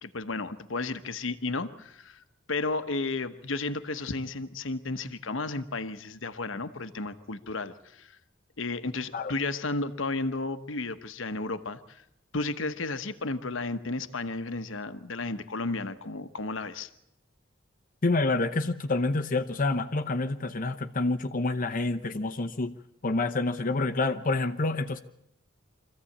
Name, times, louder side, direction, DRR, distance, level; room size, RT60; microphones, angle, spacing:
voice 1, 0.0-8.2 8.6-12.0 12.3-16.9, left 3 dB, 75° left, 11 dB, 1.1 m, -33 dB
voice 2, 18.0-22.7 23.0-25.0, left 2 dB, 45° left, 7 dB, 0.8 m, -28 dB
25.0 x 15.5 x 8.6 m, 0.79 s
head